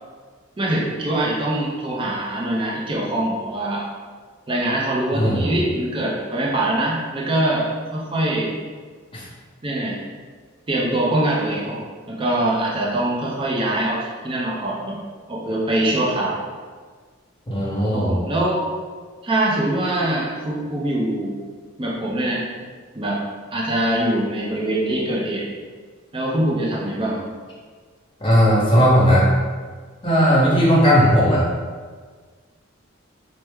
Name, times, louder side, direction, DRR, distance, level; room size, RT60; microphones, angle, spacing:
voice 1, 0.6-3.8 4.5-8.5 9.6-10.0 10.7-15.0 15.3-16.4 17.9-18.6 19.2-21.4 21.8-22.4 22.9-23.2 23.5-25.4 26.1-27.2, right 1 dB, 25° right, -4 dB, 0.5 m, -23 dB
voice 2, 5.1-5.5 9.1-9.2 17.5-18.1 28.2-29.3 30.0-31.5, equal, 25° left, -7 dB, 1.0 m, -16 dB
4.3 x 2.1 x 3.5 m, 1.5 s
head